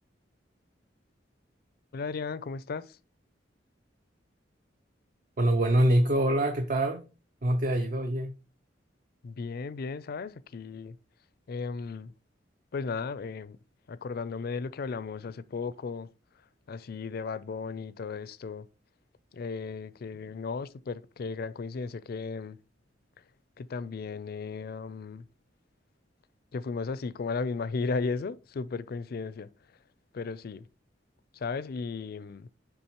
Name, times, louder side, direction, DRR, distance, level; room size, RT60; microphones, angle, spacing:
voice 1, 1.9-3.0 9.2-11.0 11.5-12.1 12.7-13.6 13.9-16.1 16.7-18.7 19.3-22.6 23.6-25.2 26.5-29.5 30.1-30.6 31.3-32.5, left 4 dB, 55° left, 0.4 m, -35 dB
voice 2, 5.4-7.0 7.4-8.3, right 1 dB, 45° right, 0.6 m, -24 dB
9.8 x 3.5 x 3.0 m
head